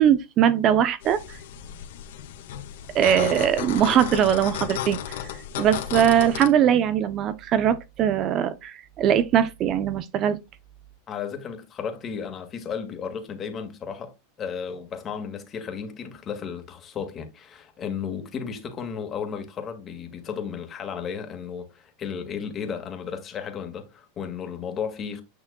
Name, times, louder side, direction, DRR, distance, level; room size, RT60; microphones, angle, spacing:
voice 1, 0.0-1.4 2.9-5.2 5.6-10.4, right 9 dB, 40° right, 0.7 m, -21 dB
sound 1, 1.0-6.5, left 11 dB, 75° left, 1.7 m, -34 dB
voice 2, 11.1-25.2, left 7 dB, 30° left, 1.9 m, -34 dB
9.4 x 5.9 x 2.3 m
supercardioid pair, 125°, 0 cm